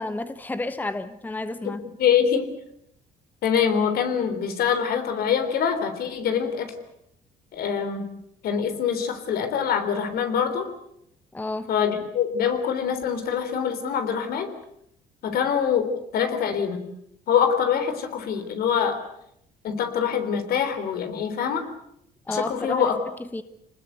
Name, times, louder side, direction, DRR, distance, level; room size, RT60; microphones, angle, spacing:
voice 1, 0.0-1.8 11.3-11.7 22.3-22.9 23.2-23.4, left 2 dB, 10° left, 1.1 m, -31 dB
voice 2, 2.0-2.5 3.4-6.7 7.5-8.1 8.4-10.7 11.7-14.5 15.2-16.9 17.3-19.0 19.6-21.6 22.3-23.0, left 7 dB, 65° left, 3.7 m, -24 dB
26.0 x 20.0 x 8.1 m
cardioid pair, 110°, 17 cm